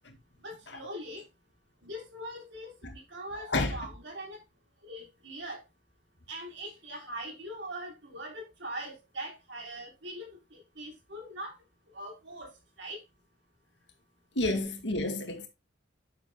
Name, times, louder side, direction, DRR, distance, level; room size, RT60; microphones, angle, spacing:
voice 1, 0.4-1.2 1.8-4.4 4.8-5.6 6.3-11.5 11.9-12.5 12.8-13.0, right 1 dB, 65° right, 3.6 m, -41 dB
voice 2, 14.4-15.5, left 2 dB, 60° left, 2.0 m, -29 dB
9.4 x 6.9 x 2.2 m
head